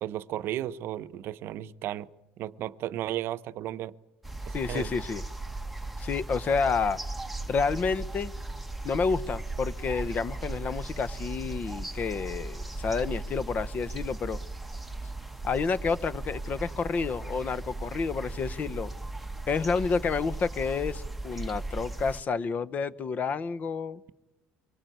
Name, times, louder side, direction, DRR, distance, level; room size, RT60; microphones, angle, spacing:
voice 1, 0.0-2.1 2.4-3.9 4.5-4.9, right 12 dB, 60° right, 13 dB, 0.8 m, -34 dB
sound 1, 4.2-22.2, right 2 dB, ahead, 1.1 m, -37 dB
voice 2, 4.5-5.2 6.0-7.0 7.5-8.3 8.8-14.4 15.4-18.9 19.5-24.0, left 5 dB, 35° left, 17 dB, 0.9 m, -29 dB
24.0 x 19.0 x 9.3 m, 0.97 s
cardioid pair, 120°, 4 cm